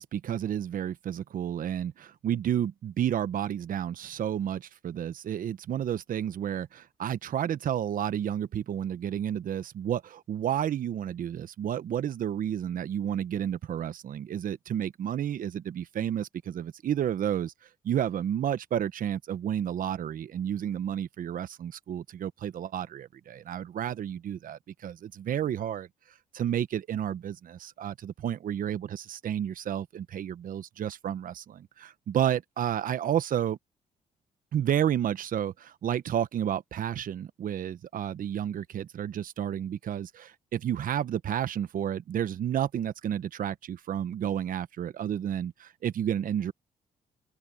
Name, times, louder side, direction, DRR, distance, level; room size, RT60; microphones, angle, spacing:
voice 1, 0.0-17.5 17.8-25.9 26.3-33.6 34.5-46.5, right 10 dB, 65° right, 1.1 m, -31 dB
open air
supercardioid pair, 60°, 15 cm